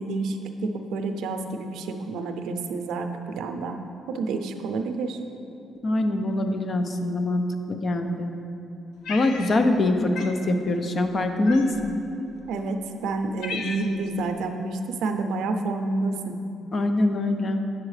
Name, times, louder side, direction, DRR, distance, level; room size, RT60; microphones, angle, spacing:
voice 1, 0.0-3.8 4.1-5.2 12.5-16.4, right 3 dB, 85° right, 6 dB, 0.5 m, -29 dB
voice 2, 5.8-8.3 9.1-11.9 16.7-17.6, left 2 dB, 45° left, 6 dB, 0.6 m, -24 dB
Cat, 9.0-9.9 10.1-10.4 11.4-12.0 12.7-12.8 13.1-14.1, left 4 dB, 85° left, 0.6 m, -35 dB
8.8 x 7.1 x 3.2 m, 2.8 s
cardioid pair, 90°, 0 cm